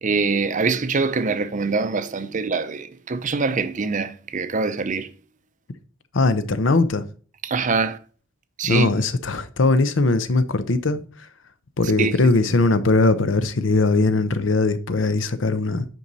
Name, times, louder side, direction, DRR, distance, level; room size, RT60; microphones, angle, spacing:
voice 1, 0.0-5.1 7.4-8.0 8.6-8.9 12.0-12.2, right 4 dB, 40° right, 0.6 m, -24 dB
voice 2, 6.1-7.0 8.6-11.0 11.8-15.9, left 3 dB, 70° left, 0.7 m, -20 dB
9.0 x 5.4 x 4.1 m
head